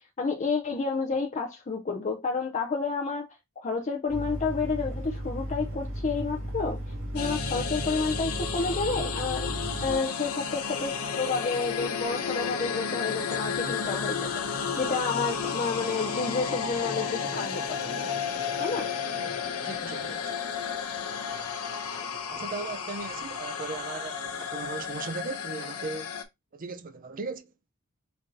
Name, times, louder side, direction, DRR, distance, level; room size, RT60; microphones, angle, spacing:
voice 1, 0.0-3.3 3.6-6.8 7.1-14.4 14.7-18.0 18.6-18.9, left 4 dB, 35° left, 0.5 m, -30 dB
sound 1, 4.1-10.0, equal, 60° right, 2.0 m, -35 dB
sound 2, 7.2-26.2, left 6 dB, 80° left, 0.8 m, -32 dB
sound 3, 7.4-26.1, right 2 dB, 20° right, 1.3 m, -53 dB
voice 2, 19.1-20.3 22.3-26.1 26.5-27.5, right 4 dB, 40° right, 0.5 m, -38 dB
5.2 x 2.7 x 3.8 m
head